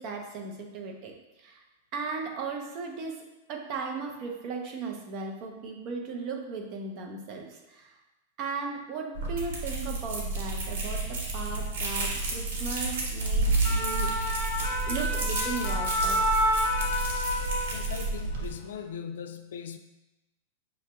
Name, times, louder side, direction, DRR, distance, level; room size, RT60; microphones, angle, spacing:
voice 1, 0.0-1.6 1.9-3.2 3.5-7.9 8.4-14.4 14.9-16.2, right 4 dB, 40° right, 2 dB, 0.7 m, -37 dB
sound 1, 9.1-18.5, right 2 dB, 75° right, 1.1 m, -30 dB
sound 2, 13.4-18.2 18.5-18.8, equal, 65° left, 0.8 m, -29 dB
voice 2, 17.7-19.8, left 7 dB, 85° left, 8 dB, 0.4 m, -39 dB
6.2 x 2.9 x 2.3 m, 1.0 s
supercardioid pair, 150°, 0 cm